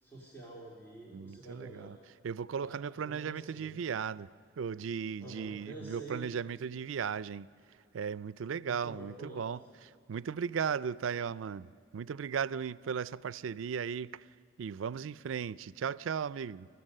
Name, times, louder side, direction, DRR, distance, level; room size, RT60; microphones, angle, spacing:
voice 1, 0.0-1.9 2.6-4.0 5.2-6.3 8.7-9.5, right 2 dB, 10° left, 2.6 m, -48 dB
voice 2, 1.1-2.0 2.2-4.3 4.6-7.5 7.9-9.6 10.1-14.3 14.6-16.7, right 7 dB, 85° right, 0.4 m, -36 dB
27.0 x 14.5 x 6.6 m
head